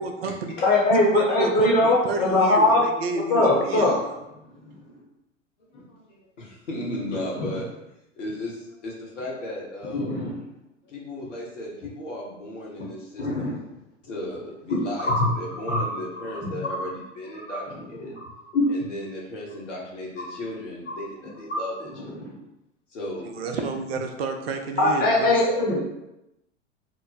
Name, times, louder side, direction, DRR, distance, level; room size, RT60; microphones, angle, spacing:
voice 1, 0.0-0.5 0.9-4.2 23.2-25.4, right 4 dB, 55° right, 5 dB, 0.5 m, -30 dB
voice 2, 0.6-2.8 3.3-4.0 7.4-7.5 9.9-10.3 13.2-13.5 15.1-15.3 15.7-15.9 16.6-16.7 18.2-18.3 18.5-18.6 22.2-22.3 24.8-25.8, left 2 dB, 25° left, -5 dB, 0.9 m, -21 dB
voice 3, 5.7-7.7 8.1-10.3 10.8-13.6 14.0-18.1 18.7-22.2 22.9-23.7, left 1 dB, 70° left, -3 dB, 1.1 m, -36 dB
2.9 x 2.0 x 4.0 m, 0.88 s
figure-of-eight pair, 90°, 37 cm